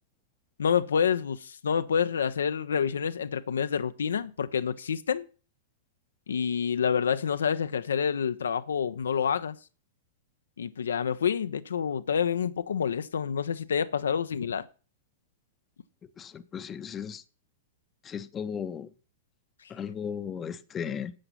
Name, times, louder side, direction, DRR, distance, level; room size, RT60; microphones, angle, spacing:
voice 1, 0.6-5.3 6.3-9.6 10.6-14.7, left 7 dB, 70° left, 0.6 m, -28 dB
voice 2, 16.2-17.2 18.0-18.9 19.7-21.1, left 7 dB, 20° left, 0.8 m, -36 dB
11.5 x 7.8 x 5.6 m
figure-of-eight pair, 100°, 0 cm